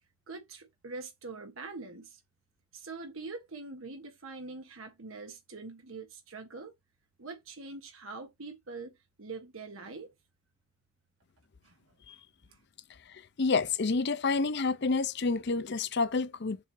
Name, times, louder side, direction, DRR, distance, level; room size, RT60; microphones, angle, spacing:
voice 1, 0.3-2.2 2.7-6.7 7.2-10.1 11.6-11.7 12.5-12.6, right 3 dB, 85° right, 1.3 m, -44 dB
voice 2, 13.1-16.6, left 4 dB, 55° left, 0.6 m, -29 dB
6.9 x 2.8 x 4.8 m
head